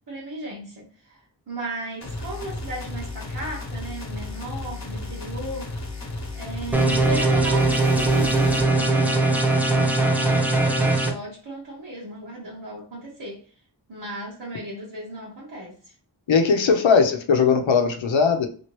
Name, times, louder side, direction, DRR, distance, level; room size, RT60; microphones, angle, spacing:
voice 1, 0.1-0.9 1.5-5.8 6.3-9.3 9.7-13.4 13.9-15.8, right 1 dB, 65° right, -6 dB, 0.9 m, -35 dB
sound 1, 2.0-8.7, left 2 dB, 35° left, 0.8 m, -34 dB
sound 2, 6.7-11.1, right 2 dB, 5° right, 0.4 m, -20 dB
voice 2, 16.3-18.5, left 5 dB, 80° left, 6 dB, 0.6 m, -19 dB
3.0 x 2.6 x 3.0 m, 0.43 s
wide cardioid pair, 45°, 46 cm